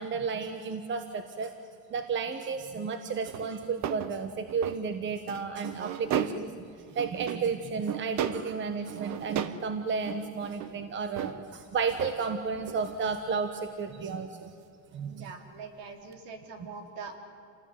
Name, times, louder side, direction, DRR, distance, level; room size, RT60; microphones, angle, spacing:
voice 1, 0.0-1.5 1.9-6.7 6.9-14.5 14.9-15.2, right 5 dB, 30° right, 8 dB, 1.4 m, -32 dB
sound 1, 3.3-4.8 5.3-6.6 6.9-7.5 7.9-8.6 8.9-9.7 9.9-11.4 11.9-12.2 12.6-13.0 13.6-13.7 16.1-16.2, right 10 dB, 45° right, 1.1 m, -35 dB
voice 2, 15.2-17.2, right 4 dB, 65° right, 5 dB, 4.2 m, -43 dB
28.0 x 19.0 x 9.6 m, 2.6 s
cardioid pair, 155°, 38 cm